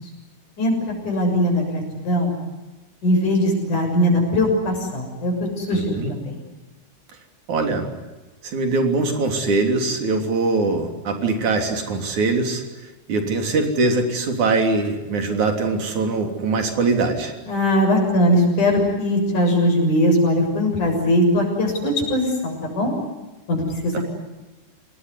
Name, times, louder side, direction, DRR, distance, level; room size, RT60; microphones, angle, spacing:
voice 1, 1.0-2.3 3.0-6.4 17.5-22.9 23.5-24.0, left 1 dB, 85° left, 2 dB, 8.4 m, -20 dB
voice 2, 5.7-6.1 7.5-7.9 8.4-12.6 13.1-17.3, right 3 dB, 70° right, 4 dB, 4.7 m, -22 dB
27.5 x 19.5 x 9.8 m, 1.1 s
omnidirectional pair, 3.5 m